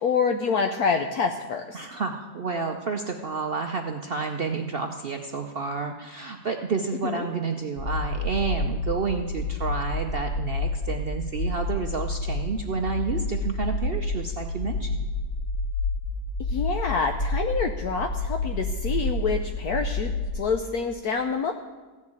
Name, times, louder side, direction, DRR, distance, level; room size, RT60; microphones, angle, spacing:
voice 1, 0.0-1.9 7.0-7.2 16.5-21.5, left 5 dB, 65° left, 5 dB, 1.1 m, -27 dB
voice 2, 1.7-15.1, right 4 dB, 70° right, 4 dB, 0.5 m, -30 dB
sound 1, 7.8-20.3, left 2 dB, 30° left, 0.9 m, -29 dB
14.5 x 6.5 x 8.5 m, 1.3 s
omnidirectional pair, 1.9 m